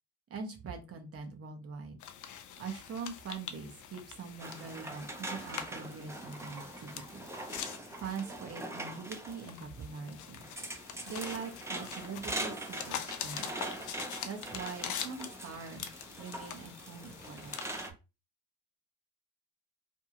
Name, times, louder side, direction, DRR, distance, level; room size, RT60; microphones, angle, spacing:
voice 1, 0.3-2.0 2.6-7.3 8.0-10.4 11.1-13.5 14.2-15.9 16.2-17.5, right 5 dB, 50° right, 4 dB, 0.9 m, -43 dB
sound 1, 2.0-17.9, left 9 dB, 80° left, 0.5 m, -45 dB
sound 2, 4.4-17.9, right 1 dB, 10° right, 0.5 m, -43 dB
2.7 x 2.4 x 2.8 m, 0.28 s
cardioid pair, 90°, 30 cm